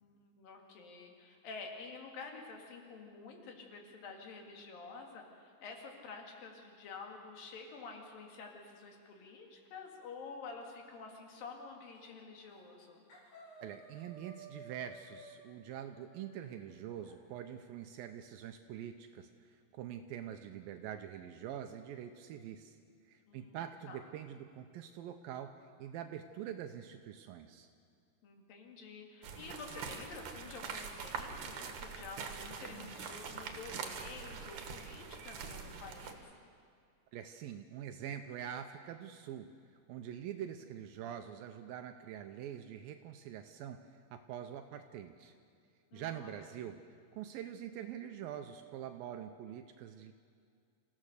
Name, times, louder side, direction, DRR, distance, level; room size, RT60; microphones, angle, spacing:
voice 1, 0.0-13.0 23.3-23.6 23.9-24.0 28.2-36.3 45.9-46.5, left 4 dB, 65° left, 2 dB, 3.8 m, -49 dB
sound 1, 11.9-12.2 12.5-12.8 13.1-17.2, right 2 dB, 85° left, 5.5 m, -56 dB
voice 2, 13.6-22.8 23.1-25.5 25.8-27.7 37.1-39.5 39.9-45.3 45.9-46.8 47.1-50.1, right 10 dB, 80° right, 7 dB, 2.4 m, -45 dB
sound 2, 29.2-36.1, right 6 dB, 65° right, 2.7 m, -44 dB
27.5 x 15.5 x 6.6 m, 2.3 s
omnidirectional pair, 4.4 m